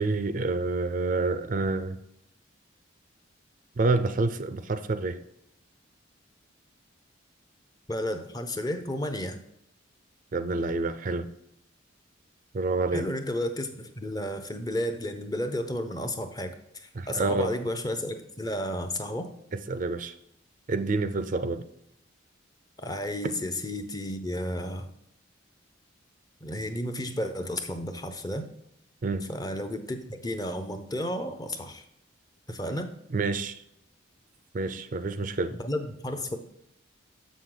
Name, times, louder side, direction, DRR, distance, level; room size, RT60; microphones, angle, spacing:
voice 1, 0.0-2.0 3.8-5.2 10.3-11.3 12.5-13.1 16.9-17.5 19.5-20.1 20.7-21.7 29.0-29.3 33.1-33.6 34.5-35.5, right 3 dB, 40° right, 10 dB, 0.4 m, -28 dB
voice 2, 7.9-9.4 12.9-19.3 22.8-24.9 26.4-28.5 29.3-31.8 32.5-33.0 35.6-36.4, left 1 dB, 20° left, 7 dB, 0.6 m, -32 dB
7.2 x 6.3 x 3.8 m, 0.76 s
head